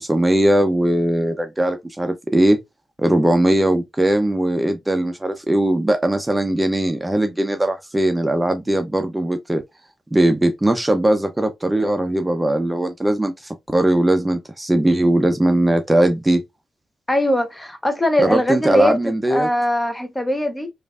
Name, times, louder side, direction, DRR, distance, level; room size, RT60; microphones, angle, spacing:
voice 1, 0.0-2.6 3.0-9.6 10.1-16.4 18.2-19.5, right 1 dB, 15° right, 0.6 m, -19 dB
voice 2, 17.1-20.7, left 1 dB, 15° left, 0.8 m, -21 dB
3.2 x 2.4 x 2.3 m
supercardioid pair, 45°, 0 cm